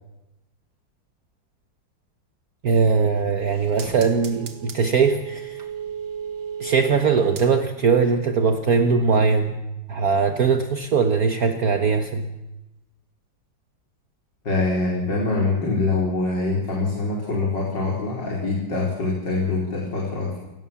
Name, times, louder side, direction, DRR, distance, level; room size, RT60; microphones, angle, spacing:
voice 1, 2.6-5.7 6.6-9.5 9.9-12.3, right 5 dB, 55° right, 6 dB, 1.7 m, -20 dB
sound 1, 2.8-7.9 8.3-8.4, right 8 dB, 85° right, 2.5 m, -36 dB
voice 2, 14.4-20.4, left 3 dB, 65° left, -2 dB, 4.9 m, -24 dB
29.5 x 18.0 x 7.2 m, 1.0 s
omnidirectional pair, 2.0 m